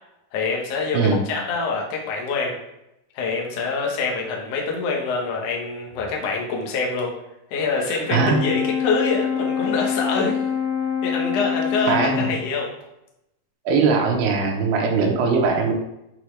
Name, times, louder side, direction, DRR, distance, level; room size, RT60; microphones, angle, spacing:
voice 1, 0.3-2.6 3.1-7.1 7.5-10.4 11.0-12.7, left 4 dB, 80° left, -1 dB, 1.4 m, -25 dB
voice 2, 7.8-8.4 11.9-12.3 13.7-15.7, right 5 dB, 80° right, 1 dB, 3.0 m, -20 dB
Brass instrument, 8.1-12.5, left 7 dB, 60° left, 3.1 m, -25 dB
8.4 x 4.1 x 3.3 m, 0.85 s
omnidirectional pair, 4.8 m